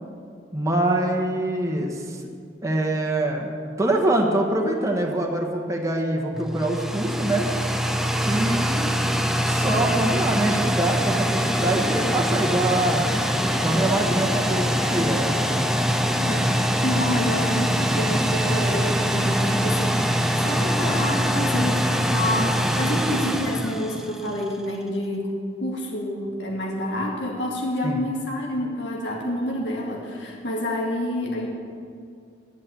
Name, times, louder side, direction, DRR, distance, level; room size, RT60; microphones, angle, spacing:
voice 1, 0.5-2.2 2.6-3.5 3.8-7.5 8.2-8.9 9.4-13.1 13.6-15.3 27.8-28.0, right 1 dB, 15° right, 0 dB, 1.2 m, -24 dB
sound 1, 6.3-24.5, equal, ahead, 0.6 m, -23 dB
voice 2, 16.1-25.3 25.6-31.5, left 1 dB, 85° left, -1 dB, 2.1 m, -28 dB
11.0 x 8.6 x 8.3 m, 2.3 s
head